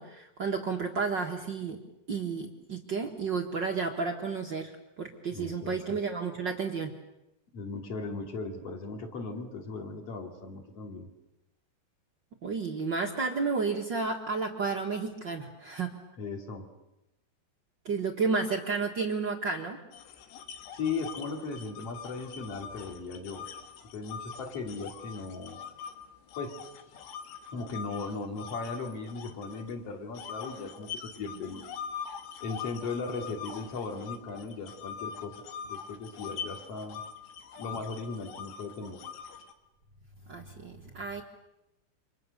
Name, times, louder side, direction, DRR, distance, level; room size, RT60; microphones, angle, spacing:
voice 1, 0.0-1.8 2.1-4.7 5.0-6.9 12.4-15.9 17.8-19.8 40.3-41.2, right 4 dB, 85° right, 1 dB, 1.0 m, -31 dB
voice 2, 5.3-6.0 7.5-11.1 16.2-16.7 20.7-23.5 23.9-25.6 26.4-26.6 27.5-31.6 32.4-35.4 35.7-37.0 37.6-39.0, left 4 dB, 40° left, 3 dB, 3.4 m, -37 dB
sound 1, 19.9-25.9 26.3-29.7 30.2-39.5, left 7 dB, 75° left, 3.9 m, -42 dB
29.0 x 26.0 x 6.7 m, 0.89 s
omnidirectional pair, 5.0 m